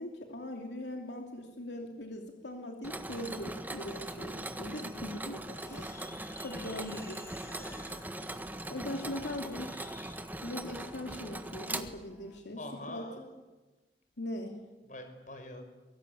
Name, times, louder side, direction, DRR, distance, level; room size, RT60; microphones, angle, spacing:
voice 1, 0.0-5.9 6.4-7.2 7.6-7.8 8.7-9.7 10.4-12.6 12.9-13.0 14.2-14.6, left 1 dB, 85° left, 2 dB, 2.9 m, -40 dB
Mechanisms, 2.8-12.4, right 1 dB, 10° right, 1.4 m, -41 dB
sound 1, 5.5-10.2, left 3 dB, 15° left, 2.1 m, -54 dB
voice 2, 6.7-7.0 12.6-13.3 14.8-15.6, left 1 dB, 45° left, 6 dB, 5.7 m, -45 dB
24.5 x 23.5 x 8.7 m, 1.2 s
head